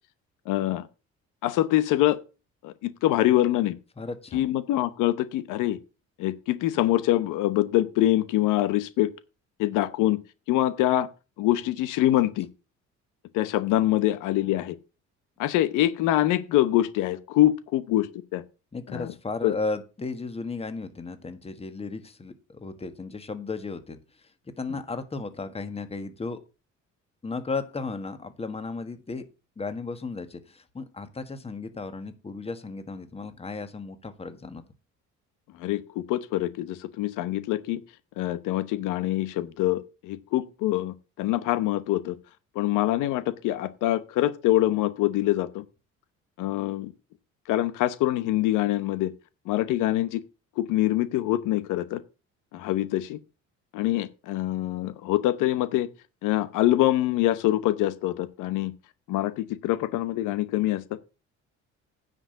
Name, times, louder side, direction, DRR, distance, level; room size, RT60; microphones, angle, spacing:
voice 1, 0.5-0.9 1.4-2.2 2.6-3.8 4.3-5.8 6.2-9.1 9.6-10.2 10.5-11.1 11.4-12.5 13.3-14.8 15.4-18.4 18.9-19.1 19.4-19.6 35.6-37.8 38.2-42.2 42.5-45.6 46.4-46.9 47.5-49.1 49.5-50.2 50.6-52.0 52.5-53.2 53.7-55.9 56.2-58.7 59.1-60.8, left 14 dB, 85° left, 1.0 m, -24 dB
voice 2, 4.0-4.4 18.7-24.0 24.6-26.4 27.2-29.2 29.6-34.6, left 3 dB, 20° left, 1.6 m, -35 dB
9.9 x 5.1 x 7.9 m
cardioid pair, 110°, 30 cm